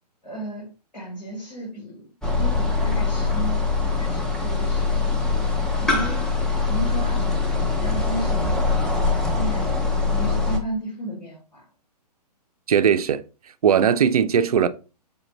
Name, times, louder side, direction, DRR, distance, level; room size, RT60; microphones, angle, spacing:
voice 1, 0.2-2.1 2.4-5.5 5.8-6.2 6.7-8.9 9.3-9.7 10.0-11.6, right 1 dB, 90° left, 2.0 m, -34 dB
sound 1, 2.2-10.6, left 4 dB, 5° left, 0.5 m, -23 dB
voice 2, 12.7-13.2 13.6-14.7, right 8 dB, 60° right, 0.4 m, -18 dB
5.1 x 2.5 x 2.9 m
figure-of-eight pair, 120°, 21 cm